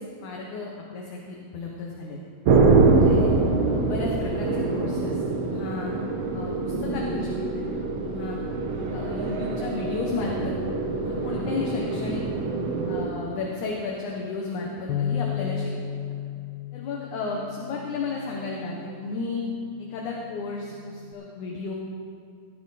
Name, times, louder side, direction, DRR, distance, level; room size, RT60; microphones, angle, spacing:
voice 1, 0.2-2.2 2.8-3.3 3.7-5.9 6.3-8.4 8.9-10.5 10.9-12.2 12.9-16.0 16.7-19.4 19.8-21.7, left 4 dB, 65° left, -2 dB, 2.4 m, -33 dB
sound 1, 2.5-13.1, right 3 dB, 65° right, 1.7 m, -24 dB
Bass guitar, 14.9-19.3 20.0-21.1, left 8 dB, 90° left, 2.4 m, -34 dB
16.0 x 11.0 x 4.1 m, 2.3 s
omnidirectional pair, 4.0 m